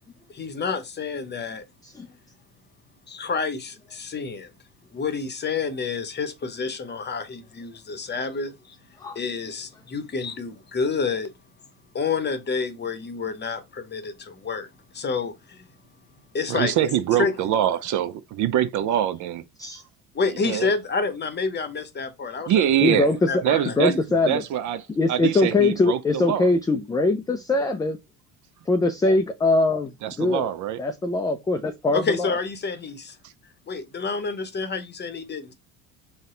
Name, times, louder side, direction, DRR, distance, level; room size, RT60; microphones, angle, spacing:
voice 1, 0.3-1.6 3.1-4.5 4.9-8.8 9.1-11.3 11.9-14.7 14.9-15.6 16.3-16.9 17.2-17.3 20.1-22.7 22.9-23.0 23.3-24.0 31.9-33.2 33.7-35.5, left 4 dB, 25° left, 0.8 m, -29 dB
voice 2, 16.5-19.4 20.4-20.7 22.5-23.1 23.4-24.0 24.3-26.5 30.0-30.8, right 10 dB, 50° right, 0.5 m, -24 dB
voice 3, 22.8-23.3 23.8-24.4 25.0-28.0 28.7-29.9 30.2-30.5 30.8-32.3, left 2 dB, 10° left, 0.3 m, -22 dB
4.0 x 2.2 x 3.7 m
supercardioid pair, 80°, 39 cm